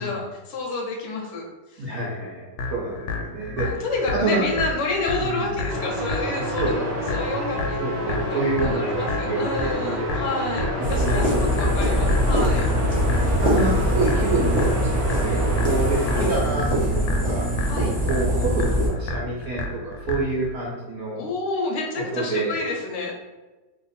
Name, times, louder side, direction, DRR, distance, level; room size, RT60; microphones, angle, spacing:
voice 1, 0.0-1.5 1.7-1.9 3.6-7.8 8.1-12.7 17.7-17.9 21.2-23.1, left 2 dB, 55° left, -1 dB, 0.8 m, -29 dB
voice 2, 1.8-3.8 4.1-4.6 5.2-5.5 6.3-7.0 7.8-10.2 10.8-11.9 12.5-12.8 13.4-17.5 18.0-21.2 22.0-22.6, right 2 dB, 65° right, -5 dB, 1.1 m, -28 dB
sound 1, 2.6-20.6, left 2 dB, 85° left, 1.3 m, -32 dB
sound 2, 5.7-16.3, equal, 40° right, 1.0 m, -29 dB
sound 3, 10.8-18.9, equal, 10° left, 0.5 m, -23 dB
2.8 x 2.5 x 4.0 m, 1.2 s
omnidirectional pair, 1.9 m